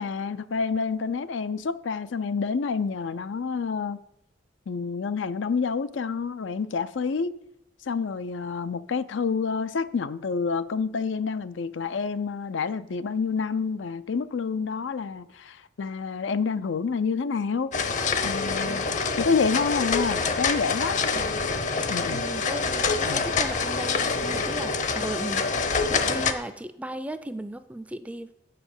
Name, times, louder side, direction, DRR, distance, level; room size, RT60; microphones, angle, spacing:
voice 1, 0.0-4.0 4.7-7.3 7.8-17.7 18.2-18.8 19.2-21.0 21.9-22.2 23.0-23.2, left 5 dB, 85° left, 0.5 m, -28 dB
sound 1, 17.7-26.3, left 4 dB, 40° left, 0.7 m, -26 dB
voice 2, 21.1-21.5 22.1-28.3, right 1 dB, 5° right, 0.4 m, -36 dB
8.0 x 6.6 x 7.2 m
head